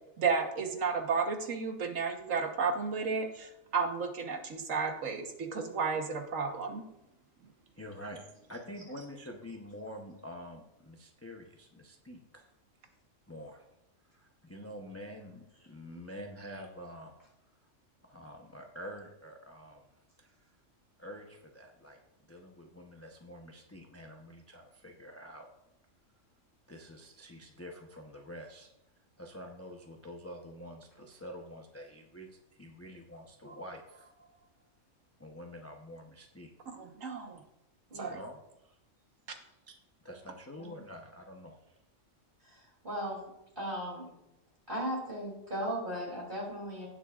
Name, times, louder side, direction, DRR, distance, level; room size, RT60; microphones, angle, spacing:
voice 1, 0.2-6.8 36.7-37.4 37.9-38.2 39.3-39.4, right 5 dB, 85° right, 5 dB, 1.5 m, -33 dB
voice 2, 7.8-8.2 8.5-12.5 13.3-13.6 14.1-17.1 18.0-19.8 20.2-20.3 21.0-22.0 22.3-25.5 26.7-28.7 29.2-34.5 35.2-36.5 38.1-38.8 39.4-39.7 40.0-41.6, equal, 15° left, 1 dB, 0.7 m, -47 dB
voice 3, 37.9-38.2 40.5-40.8 42.4-43.2 43.6-44.1 44.7-46.9, equal, 40° right, -4 dB, 3.2 m, -37 dB
17.0 x 7.5 x 2.4 m, 0.87 s
omnidirectional pair, 1.3 m